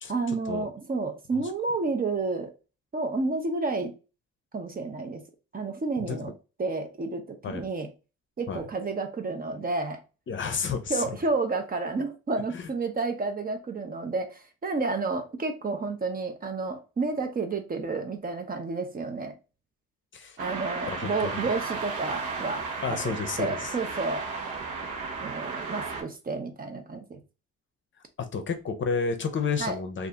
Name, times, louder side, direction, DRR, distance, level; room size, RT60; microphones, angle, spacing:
voice 1, 0.1-2.5 2.9-3.9 4.5-5.2 5.5-6.3 6.6-7.9 8.4-10.0 10.9-19.3 20.4-24.3 25.2-27.2 29.6-29.8, right 3 dB, 30° right, 0.6 m, -30 dB
voice 2, 10.3-11.0 12.5-12.7 20.1-20.4 20.9-21.5 22.8-23.7 28.2-30.1, left 5 dB, 40° left, 0.6 m, -31 dB
sound 1, 20.4-26.0, right 4 dB, 75° right, 0.9 m, -34 dB
2.6 x 2.5 x 3.4 m
cardioid pair, 90°, 30 cm